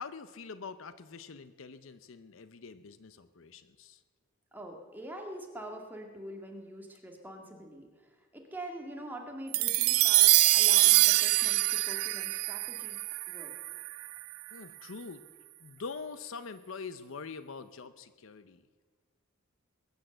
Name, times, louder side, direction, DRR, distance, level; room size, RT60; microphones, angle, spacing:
voice 1, 0.0-4.0 14.5-15.2 15.6-18.6, left 5 dB, 70° left, 12 dB, 0.7 m, -44 dB
voice 2, 4.5-13.0 13.3-13.5, right 1 dB, 10° right, 1 dB, 2.0 m, -45 dB
sound 1, 9.5-14.1, right 19 dB, 90° right, 0.4 m, -24 dB
20.5 x 8.4 x 7.8 m, 1.5 s
head